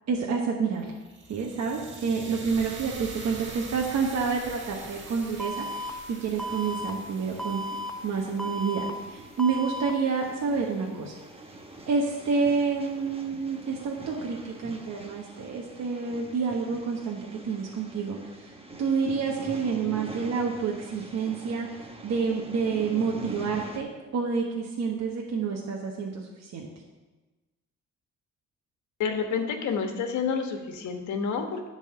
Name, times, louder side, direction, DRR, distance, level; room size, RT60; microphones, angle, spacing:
voice 1, 0.1-0.9 1.3-7.6 8.0-11.2 11.9-18.5 18.8-26.7, right 5 dB, 60° right, -1 dB, 1.3 m, -29 dB
sound 1, 0.8-10.9, right 3 dB, 40° right, 1.5 m, -45 dB
Alarm, 5.4-5.9 6.4-6.9 7.4-7.9 8.4-8.9 9.4-9.9, right 1 dB, ahead, 0.7 m, -34 dB
sound 2, 6.5-23.8, right 2 dB, 20° right, 1.2 m, -44 dB
voice 2, 29.0-31.7, left 6 dB, 70° left, 5 dB, 1.3 m, -29 dB
10.5 x 4.1 x 7.6 m, 1.2 s
cardioid pair, 90°, 30 cm